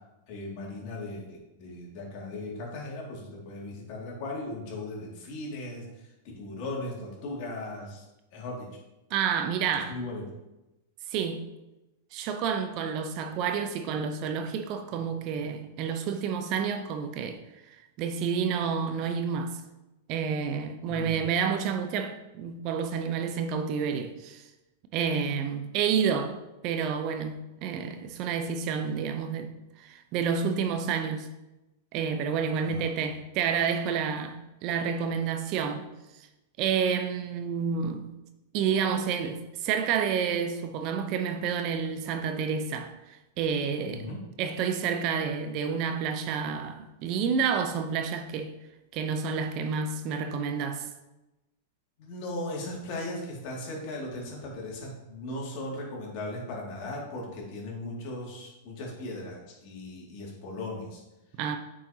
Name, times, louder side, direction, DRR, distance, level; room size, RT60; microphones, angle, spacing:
voice 1, 0.3-6.1 6.4-8.1 8.3-8.7 9.9-10.2 20.9-21.2 32.6-33.2 43.9-44.2 52.0-61.0, left 2 dB, 50° left, 2.3 m, -38 dB
voice 2, 9.1-10.0 11.1-11.5 12.1-17.4 17.7-19.6 20.1-24.5 24.9-26.4 26.6-31.3 31.9-35.9 36.6-38.1 38.5-44.1 44.4-48.5 48.9-50.9 61.4-61.6, right 6 dB, 45° right, 0.7 m, -29 dB
8.9 x 5.1 x 2.9 m
hypercardioid pair, 100°, 0 cm